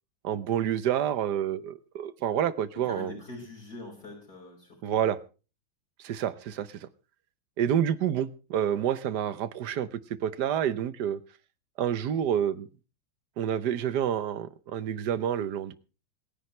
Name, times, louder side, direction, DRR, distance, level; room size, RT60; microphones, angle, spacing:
voice 1, 0.2-3.1 4.8-5.2 6.0-6.9 7.6-11.2 11.8-12.7 13.4-15.7, right 9 dB, 65° right, 1.3 m, -28 dB
voice 2, 2.8-5.1, left 3 dB, 50° left, 5.4 m, -43 dB
26.5 x 10.0 x 3.2 m
omnidirectional pair, 2.2 m